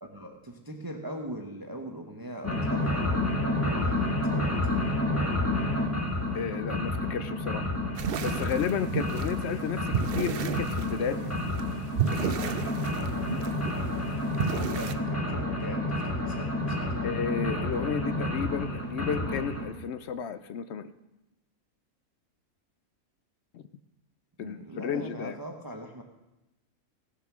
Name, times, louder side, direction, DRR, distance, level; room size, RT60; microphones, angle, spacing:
voice 1, 0.0-5.1 11.0-11.1 14.5-17.2 24.4-26.0, right 1 dB, 15° right, 3 dB, 0.9 m, -41 dB
sound 1, 2.4-19.7, left 1 dB, 10° left, 1.7 m, -30 dB
voice 2, 6.3-7.7 8.2-11.4 17.0-20.9 23.5-23.6 24.4-25.4, left 7 dB, 65° left, 12 dB, 0.6 m, -33 dB
sound 2, 8.0-14.9, right 8 dB, 65° right, 0.6 m, -33 dB
16.5 x 7.2 x 6.1 m, 0.99 s
omnidirectional pair, 1.7 m